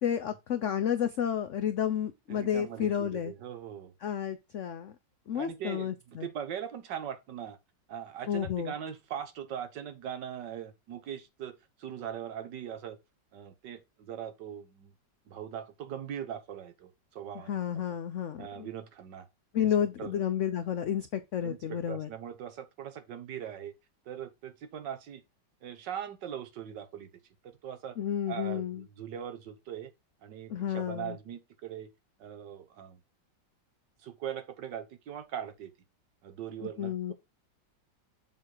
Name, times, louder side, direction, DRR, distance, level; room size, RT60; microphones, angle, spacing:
voice 1, 0.0-3.3 4.0-4.9 5.3-6.3 8.3-8.7 17.5-18.7 19.5-22.1 28.0-28.8 30.5-31.2 36.6-37.1, left 9 dB, 75° left, 0.7 m, -31 dB
voice 2, 2.3-3.9 5.3-7.6 7.9-11.5 11.8-13.0 13.3-14.9 15.3-17.6 18.4-19.3 19.6-19.7 20.0-20.2 21.4-23.7 24.1-25.2 25.6-27.1 27.4-28.0 28.3-29.9 30.2-31.9 32.2-33.0 34.0-35.7 36.2-37.1, right 9 dB, 70° right, 1.7 m, -40 dB
7.3 x 3.6 x 4.5 m
omnidirectional pair, 2.0 m